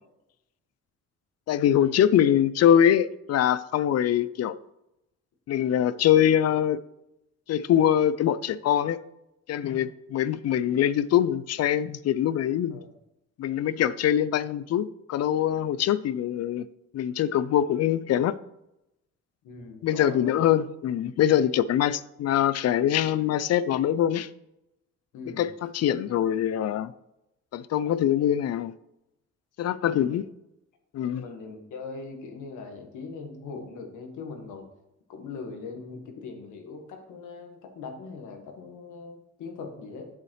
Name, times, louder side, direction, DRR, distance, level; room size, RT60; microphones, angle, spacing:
voice 1, 1.5-4.6 5.5-6.8 7.5-9.0 9.5-12.8 13.4-16.7 16.9-18.3 19.8-24.3 25.4-26.9 27.5-28.7 29.6-30.2 30.9-31.2, left 10 dB, 55° left, 0.5 m, -23 dB
voice 2, 19.4-20.4 25.1-25.5 29.8-30.2 31.2-34.7 35.1-40.1, left 4 dB, 80° left, 1.6 m, -40 dB
8.1 x 7.5 x 3.2 m
cardioid pair, 90°, 30 cm